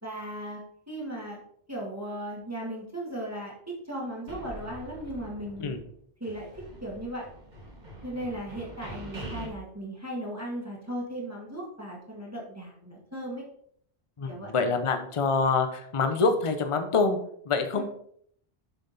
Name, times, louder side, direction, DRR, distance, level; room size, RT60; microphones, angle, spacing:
voice 1, 0.0-0.6 0.9-1.4 1.7-5.7 6.2-7.3 8.0-13.4 14.3-14.5 17.7-17.8, right 1 dB, 15° right, -3 dB, 1.5 m, -37 dB
sound 1, 4.3-5.9 6.2-9.5, right 1 dB, 45° right, 2.0 m, -43 dB
voice 2, 14.2-17.2 17.5-17.8, left 4 dB, 35° left, 7 dB, 0.8 m, -25 dB
6.9 x 5.8 x 4.2 m, 0.66 s
omnidirectional pair, 1.1 m